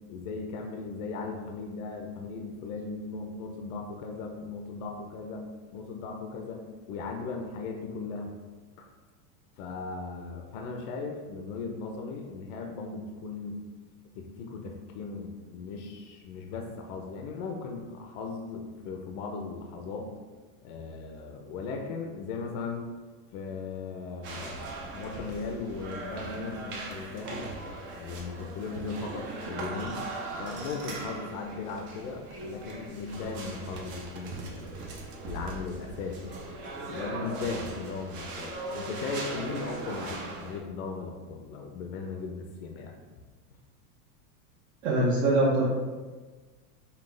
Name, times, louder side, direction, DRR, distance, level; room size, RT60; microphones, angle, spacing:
voice 1, 0.1-8.3 8.8-8.9 9.6-13.6 14.1-20.1 20.6-22.9 23.3-27.5 27.9-30.0 30.4-34.8 35.2-36.4 36.8-43.0, left 4 dB, 65° left, 2 dB, 0.7 m, -37 dB
sound 1, 24.2-40.6, right 2 dB, 25° right, 0.4 m, -39 dB
voice 2, 44.8-45.6, right 2 dB, 60° right, -8 dB, 1.1 m, -23 dB
5.6 x 2.3 x 3.2 m, 1.3 s
supercardioid pair, 150°, 47 cm